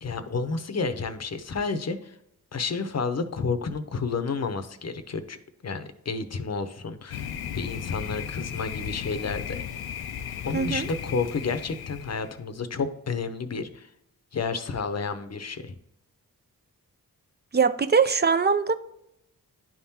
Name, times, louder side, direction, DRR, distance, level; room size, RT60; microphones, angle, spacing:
voice 1, 0.0-2.1 2.5-5.4 5.6-9.6 10.4-13.9 14.3-15.7, left 4 dB, 45° left, 0.7 m, -31 dB
Thunder, 7.1-12.4, left 8 dB, 90° left, 0.5 m, -35 dB
voice 2, 10.5-10.9 17.5-18.7, right 5 dB, 30° right, 0.4 m, -22 dB
10.5 x 3.6 x 2.8 m
cardioid pair, 60°, 36 cm